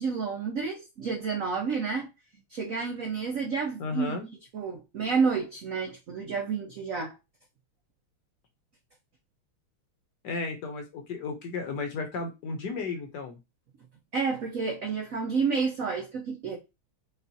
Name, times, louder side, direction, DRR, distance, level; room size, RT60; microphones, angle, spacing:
voice 1, 0.0-2.1 2.5-4.2 4.5-7.1 14.1-16.6, right 5 dB, 75° right, 0.7 m, -30 dB
voice 2, 3.8-4.3 10.2-13.4, left 4 dB, 65° left, 1.2 m, -34 dB
5.4 x 2.5 x 2.7 m
omnidirectional pair, 2.3 m